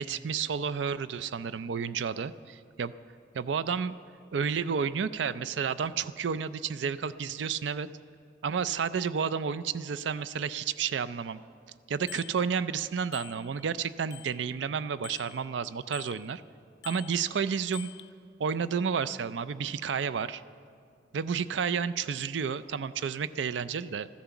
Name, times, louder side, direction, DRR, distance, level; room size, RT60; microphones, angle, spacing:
voice 1, 0.0-2.9 3.3-3.9 4.3-7.9 8.4-11.4 11.9-16.4 16.8-17.9 18.4-20.4 21.1-24.1, right 6 dB, 80° right, 15 dB, 0.4 m, -31 dB
Bicycle bell, 12.1-12.4 13.1-13.8 14.1-16.3 16.8-18.1, left 18 dB, 65° left, 0.4 m, -47 dB
14.5 x 11.5 x 7.1 m, 2.2 s
head